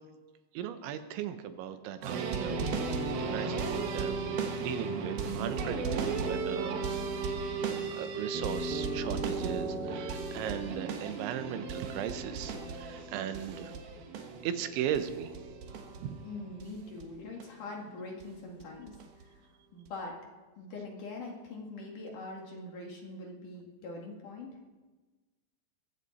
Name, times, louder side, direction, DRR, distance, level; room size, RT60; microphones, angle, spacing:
voice 1, 0.5-2.6 3.2-6.8 7.9-13.7 14.4-15.4 16.0-16.2, right 10 dB, 85° right, 9 dB, 3.4 m, -37 dB
sound 1, 2.0-16.7 17.0-17.1 17.4-17.5 18.2-18.3 18.6-19.2 19.9-20.0, right 4 dB, 65° right, 2.9 m, -35 dB
voice 2, 16.2-18.9 19.7-20.2 20.6-24.6, left 2 dB, 55° left, 0 dB, 3.0 m, -43 dB
21.5 x 15.0 x 4.2 m, 1.3 s
omnidirectional pair, 5.2 m